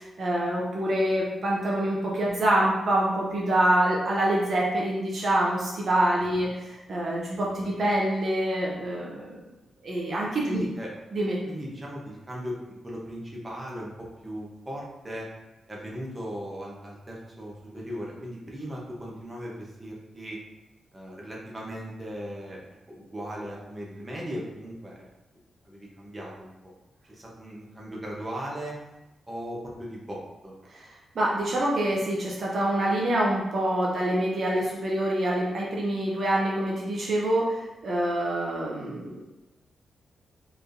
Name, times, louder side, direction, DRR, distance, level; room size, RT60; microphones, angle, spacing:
voice 1, 0.0-9.4 9.8-10.6 11.1-11.4 30.7-30.8 31.1-39.2, right 1 dB, 45° right, -4 dB, 0.7 m, -26 dB
voice 2, 10.5-10.9 11.5-15.3 15.7-20.4 20.9-22.6 22.9-24.9 25.6-26.7 27.1-28.7 29.3-30.5, equal, 15° right, -4 dB, 0.9 m, -37 dB
4.4 x 3.2 x 2.6 m, 1.0 s
wide cardioid pair, 155°, 0 cm